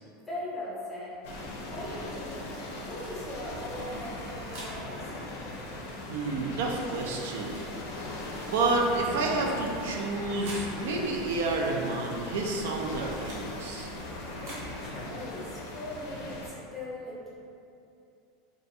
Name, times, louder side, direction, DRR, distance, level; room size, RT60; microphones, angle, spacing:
voice 1, 0.3-1.2 1.7-2.5 2.8-5.1 14.3-16.4 16.7-17.3, left 1 dB, 10° left, -8 dB, 0.6 m, -40 dB
sound 1, 1.2-16.5, left 1 dB, 70° left, 0.4 m, -39 dB
sound 2, 2.4-2.6 3.9-4.7 5.8-6.0 7.1-7.7 8.5-8.7 9.9-10.7 11.5-11.7 12.6-13.4 14.2-14.7, right 1 dB, 70° right, 0.8 m, -47 dB
voice 2, 6.1-7.6 8.5-13.9, right 3 dB, 90° right, 0 dB, 0.3 m, -29 dB
2.4 x 2.3 x 2.6 m, 2.6 s
supercardioid pair, 155°, 0 cm